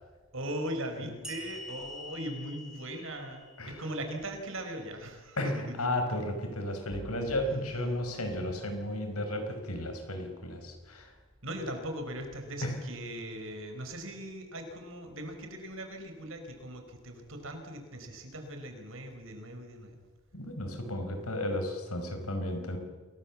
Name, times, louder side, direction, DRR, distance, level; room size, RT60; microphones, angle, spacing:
voice 1, 0.3-5.9 11.4-20.0, right 1 dB, 65° right, 5 dB, 4.8 m, -39 dB
sound 1, 1.2-4.6, left 2 dB, 5° right, 2.9 m, -47 dB
voice 2, 5.4-11.1 12.6-12.8 20.3-22.8, left 1 dB, 85° left, 5 dB, 5.3 m, -33 dB
sound 2, 6.9-9.0, equal, 35° right, 2.5 m, -49 dB
27.5 x 20.5 x 7.4 m, 1.4 s
head